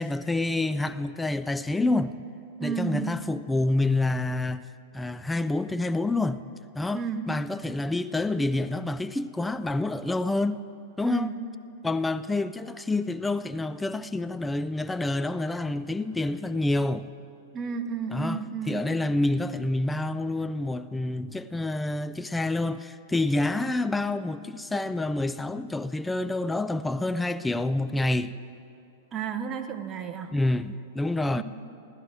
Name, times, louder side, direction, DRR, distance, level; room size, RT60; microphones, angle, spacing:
voice 1, 0.0-2.1 2.6-4.7 4.9-6.4 6.8-10.6 11.0-11.3 11.8-17.1 18.1-28.3 30.3-31.4, left 2 dB, 10° left, 0.3 m, -28 dB
voice 2, 2.6-3.2 6.9-7.2 11.0-11.4 17.5-18.9 29.1-30.3 31.3-31.4, right 6 dB, 30° right, 0.9 m, -32 dB
15.5 x 12.5 x 4.8 m
hypercardioid pair, 115°, 0 cm